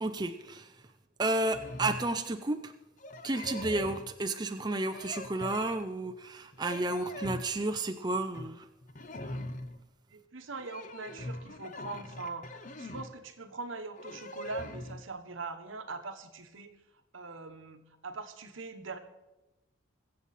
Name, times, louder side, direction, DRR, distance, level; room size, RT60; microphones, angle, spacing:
voice 1, 0.0-0.7 1.2-2.7 3.2-8.7, right 2 dB, 20° right, 7 dB, 0.5 m, -32 dB
sound 1, 1.5-2.2 3.0-4.1 4.9-6.1 6.5-7.5 8.1-8.5 8.8-9.8 10.5-13.1 14.0-15.0, left 1 dB, 40° left, 0.7 m, -42 dB
voice 2, 10.1-16.8 17.1-19.0, right 3 dB, 80° right, 8 dB, 1.1 m, -42 dB
22.5 x 7.7 x 4.2 m, 1.0 s
head